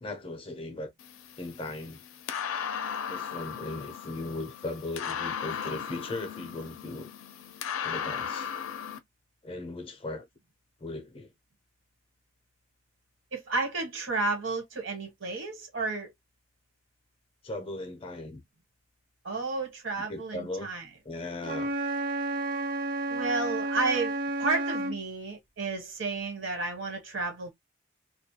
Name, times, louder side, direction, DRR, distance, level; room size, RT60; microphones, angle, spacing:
voice 1, 0.0-0.9 1.4-2.0 3.1-7.1 7.8-8.5 9.4-10.3 10.8-11.3 17.4-18.4 20.0-20.7 21.0-21.7, left 2 dB, 25° left, 0.5 m, -38 dB
sound 1, 1.0-9.0, left 8 dB, 85° left, 0.4 m, -36 dB
voice 2, 13.3-16.1 19.2-20.9 23.1-27.5, right 3 dB, 70° right, 1.2 m, -32 dB
Wind instrument woodwind instrument, 21.4-25.0, right 2 dB, 40° right, 0.3 m, -31 dB
2.2 x 2.2 x 2.7 m
head